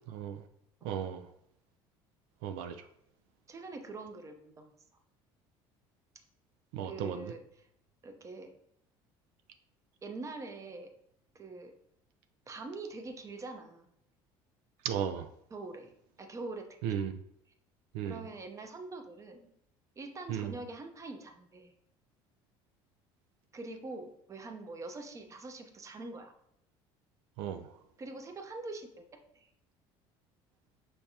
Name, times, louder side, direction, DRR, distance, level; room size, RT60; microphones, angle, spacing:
voice 1, 0.1-0.4 0.8-1.2 2.4-2.8 6.7-7.3 14.8-15.3 16.8-17.2 17.9-18.2 20.3-20.5 27.4-27.7, right 9 dB, 80° right, 0.4 m, -35 dB
voice 2, 3.5-4.7 6.8-7.7 8.0-8.5 10.0-10.9 11.3-11.7 12.5-13.9 15.5-15.9 16.2-17.0 18.0-19.5 20.0-21.7 23.5-26.3 28.0-29.0 29.3-29.5, right 3 dB, 25° right, 0.7 m, -44 dB
5.8 x 3.2 x 2.7 m
supercardioid pair, 100°, 12 cm